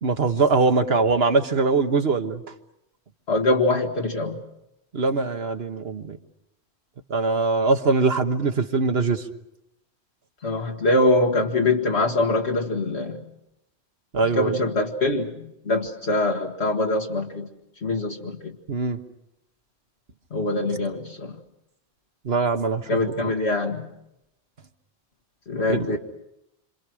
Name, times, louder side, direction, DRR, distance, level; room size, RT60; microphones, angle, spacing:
voice 1, 0.0-2.4 4.9-6.2 7.1-9.2 14.1-14.6 18.7-19.0 22.2-23.3 25.6-26.0, right 4 dB, 65° right, 7 dB, 1.5 m, -22 dB
voice 2, 3.3-4.4 10.4-13.2 14.4-15.3 15.7-17.5 17.8-18.5 20.3-21.3 22.9-23.9 25.5-26.0, left 2 dB, 70° left, 0 dB, 1.9 m, -23 dB
27.5 x 27.0 x 6.3 m, 0.85 s
omnidirectional pair, 1.1 m